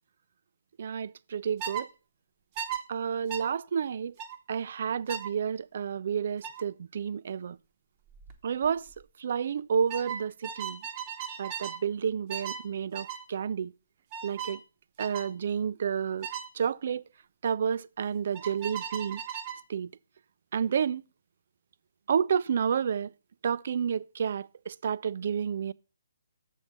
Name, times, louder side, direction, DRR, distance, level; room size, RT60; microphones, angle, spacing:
voice 1, 0.8-1.9 2.9-4.1 4.5-7.6 8.4-8.8 9.2-10.8 11.4-13.7 14.2-14.6 15.0-16.3 16.6-17.0 17.4-19.2 19.7-19.9 20.5-21.0 22.1-23.1 23.4-25.7, right 7 dB, 50° right, 0.3 m, -30 dB
sound 1, 1.6-1.9 2.6-2.8 3.3-3.5 4.2-4.4 5.1-5.3 6.4-6.6 8.1-8.3 8.6-9.0 9.9-11.8 12.3-12.7 12.9-13.2 14.1-14.6 15.0-15.3 16.2-16.5 18.3-19.6, right 8 dB, 30° right, 0.8 m, -37 dB
7.1 x 4.6 x 6.4 m
figure-of-eight pair, 135°, 0 cm